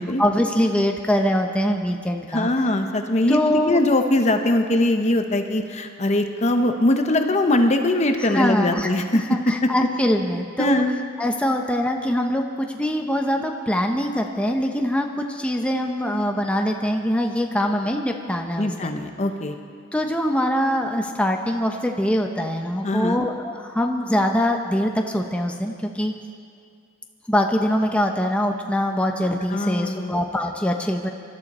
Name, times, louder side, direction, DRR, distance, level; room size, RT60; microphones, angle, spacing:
voice 1, 0.2-2.5 3.3-3.8 8.2-10.8 11.2-18.9 19.9-26.1 27.3-31.1, equal, 5° left, 2 dB, 0.8 m, -23 dB
voice 2, 2.3-3.4 3.7-9.7 10.6-10.9 18.6-19.5 22.8-23.2 29.5-30.2, left 1 dB, 35° left, 6 dB, 0.9 m, -21 dB
24.0 x 12.5 x 4.3 m, 2.2 s
head